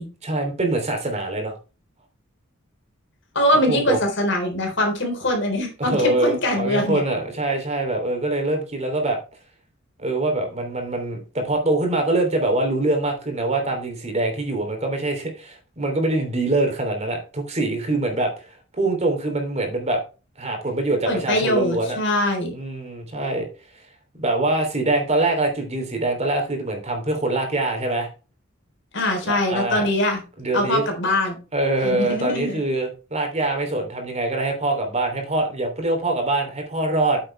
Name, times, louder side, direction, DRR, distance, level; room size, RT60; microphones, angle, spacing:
voice 1, 0.2-1.5 3.7-4.0 5.8-9.2 10.0-20.0 20.4-22.0 22.5-23.5 24.2-28.1 29.2-29.9 30.4-30.8 31.5-37.2, right 2 dB, 35° right, 3 dB, 3.0 m, -24 dB
voice 2, 3.4-7.0 21.1-22.5 28.9-30.2 30.5-31.4 31.8-32.6, left 1 dB, 65° left, 3 dB, 3.7 m, -22 dB
8.9 x 7.6 x 3.3 m, 0.32 s
head